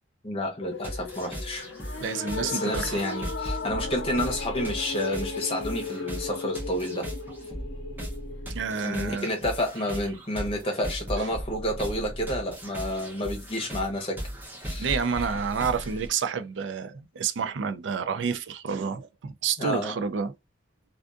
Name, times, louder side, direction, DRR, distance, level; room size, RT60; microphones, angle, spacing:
voice 1, 0.2-1.7 2.4-7.1 8.8-14.2 14.6-14.9 19.6-20.0, left 1 dB, 30° left, 0.8 m, -30 dB
sound 1, 0.6-8.9, left 3 dB, 75° left, 0.6 m, -36 dB
sound 2, 0.8-16.1, equal, 10° right, 0.7 m, -37 dB
voice 2, 2.0-3.0 8.5-9.3 11.2-11.3 14.8-20.3, right 6 dB, 75° right, 0.4 m, -29 dB
2.5 x 2.4 x 2.4 m
head